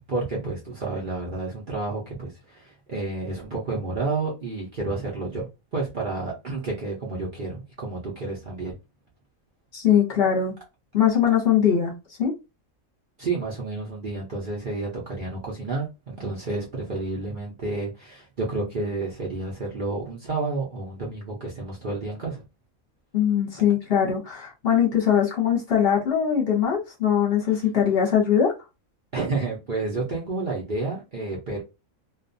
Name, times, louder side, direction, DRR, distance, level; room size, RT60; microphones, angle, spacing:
voice 1, 0.1-8.8 13.2-22.4 29.1-31.6, right 3 dB, 45° right, 0.7 m, -30 dB
voice 2, 9.7-10.6 10.9-11.9 12.2-12.3 23.1-28.5, left 8 dB, 50° left, 1.0 m, -21 dB
2.6 x 2.3 x 2.5 m
omnidirectional pair, 1.5 m